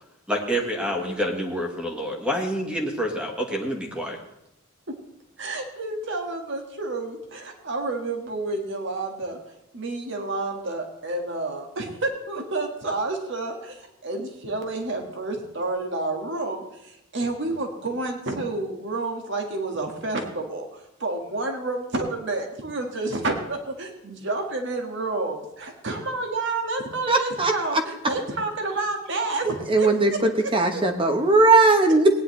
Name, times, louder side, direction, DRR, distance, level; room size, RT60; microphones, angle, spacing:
voice 1, 0.3-4.2, equal, 5° right, 1 dB, 1.5 m, -27 dB
voice 2, 5.4-9.4 9.7-30.2 30.4-30.5, right 2 dB, 60° right, 3 dB, 1.7 m, -30 dB
voice 3, 27.1-27.8 29.7-32.1, right 3 dB, 25° right, 5 dB, 1.1 m, -19 dB
18.5 x 9.9 x 3.3 m, 0.83 s
head